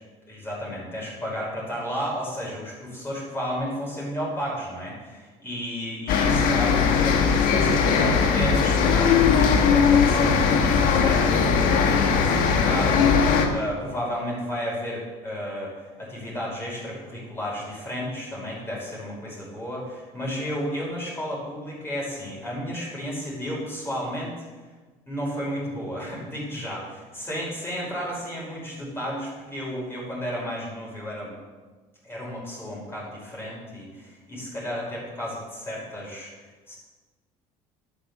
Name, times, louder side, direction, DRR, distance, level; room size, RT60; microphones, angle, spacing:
voice 1, 0.3-15.7 16.0-24.3 25.1-31.3 32.0-36.3 36.7-36.8, equal, 15° left, -4 dB, 5.6 m, -33 dB
sound 1, 6.1-13.5, left 6 dB, 70° left, 1.9 m, -19 dB
11.5 x 10.5 x 6.9 m, 1.3 s
cardioid pair, 135°, 15 cm